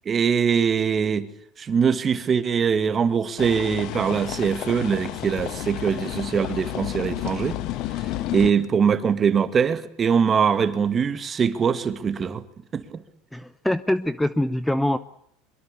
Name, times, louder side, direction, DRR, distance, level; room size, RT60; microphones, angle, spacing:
voice 1, 0.1-1.3 1.6-7.6 8.3-12.4 12.7-13.0, right 6 dB, 30° right, 2.2 m, -22 dB
sound 1, 3.4-8.5, left 14 dB, 60° left, 1.4 m, -31 dB
voice 2, 13.3-15.0, left 1 dB, 5° left, 0.9 m, -24 dB
23.5 x 22.5 x 8.6 m
supercardioid pair, 110°, 0 cm